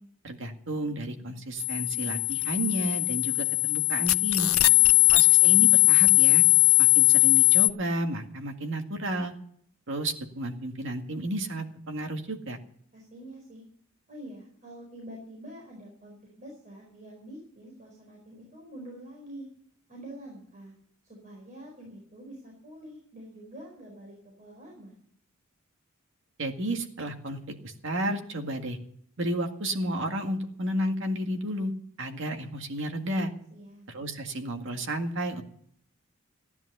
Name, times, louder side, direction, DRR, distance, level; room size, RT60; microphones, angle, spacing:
voice 1, 0.2-4.5 5.1-6.4 6.8-9.3 9.9-12.6 26.4-28.8 29.2-31.7 32.0-33.3 33.9-35.4, right 1 dB, 60° right, 4 dB, 2.0 m, -32 dB
sound 1, 1.6-7.7, left 18 dB, 80° left, 0.5 m, -20 dB
voice 2, 4.6-5.0 12.9-13.6 14.1-19.4 19.9-20.7 21.2-24.9 33.5-33.9, right 1 dB, 35° right, -1 dB, 4.7 m, -46 dB
15.5 x 10.5 x 6.8 m, 0.66 s
head